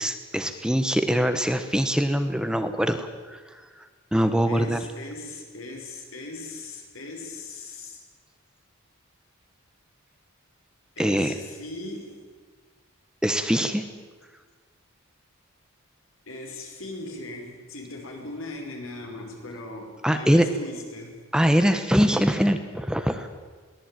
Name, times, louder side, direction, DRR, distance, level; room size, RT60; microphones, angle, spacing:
voice 1, 0.0-4.8 11.0-11.3 13.2-13.8 20.0-20.5 21.3-23.3, equal, 5° right, 8 dB, 1.0 m, -23 dB
voice 2, 4.5-8.0 11.0-12.3 16.3-21.2, left 2 dB, 70° left, 2 dB, 5.4 m, -39 dB
22.0 x 18.0 x 9.1 m, 1.5 s
head